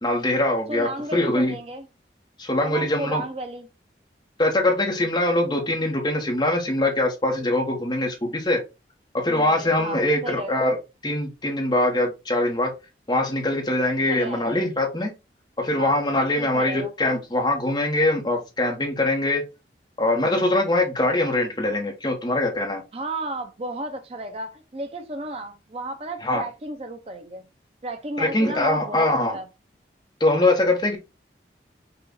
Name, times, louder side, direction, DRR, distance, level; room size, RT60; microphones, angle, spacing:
voice 1, 0.0-1.6 2.4-3.2 4.4-8.6 9.2-10.8 11.0-12.7 13.1-15.1 15.6-19.4 20.0-22.8 26.2-26.4 28.2-29.4 30.2-31.0, left 1 dB, 25° left, 1.1 m, -23 dB
voice 2, 0.7-1.9 2.6-3.7 9.3-10.6 14.1-14.6 15.8-16.0 16.4-16.9 22.9-27.4 27.8-29.5, right 2 dB, 35° right, 0.6 m, -33 dB
5.7 x 2.5 x 3.8 m
head